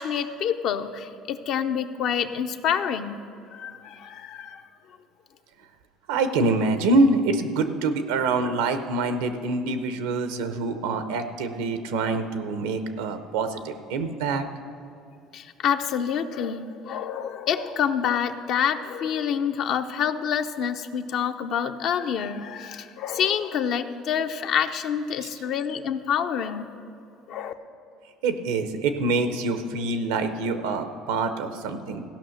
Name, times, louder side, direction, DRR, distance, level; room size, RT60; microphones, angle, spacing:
voice 1, 0.0-3.2 3.5-4.6 15.3-26.7 27.3-27.5, left 8 dB, 65° left, 8 dB, 0.6 m, -27 dB
voice 2, 6.1-14.4 25.2-25.3 28.2-32.1, right 3 dB, 90° right, 9 dB, 0.7 m, -25 dB
15.5 x 5.7 x 6.3 m, 2.6 s
supercardioid pair, 90°, 0 cm